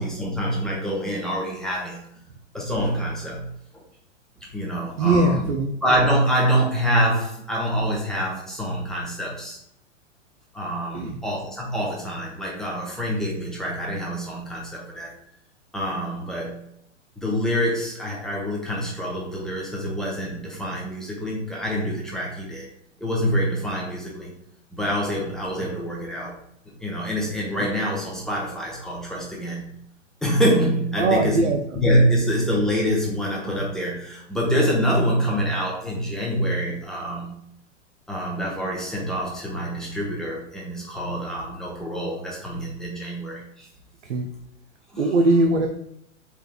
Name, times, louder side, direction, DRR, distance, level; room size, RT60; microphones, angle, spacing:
voice 1, 0.0-2.0 2.5-3.5 3.7-3.8 4.4-5.4 5.8-9.6 10.5-15.1 15.7-16.6 17.2-22.7 23.0-24.3 24.7-26.4 26.8-29.7 30.2-31.5 31.8-37.3 38.1-43.7 44.9-45.1, equal, ahead, -4 dB, 0.7 m, -25 dB
voice 2, 5.0-5.7 10.9-11.2 25.6-25.7 31.0-31.6 44.1-44.3 45.0-45.7, right 2 dB, 70° right, 3 dB, 0.6 m, -20 dB
4.4 x 3.6 x 2.2 m, 0.74 s
figure-of-eight pair, 105°, 37 cm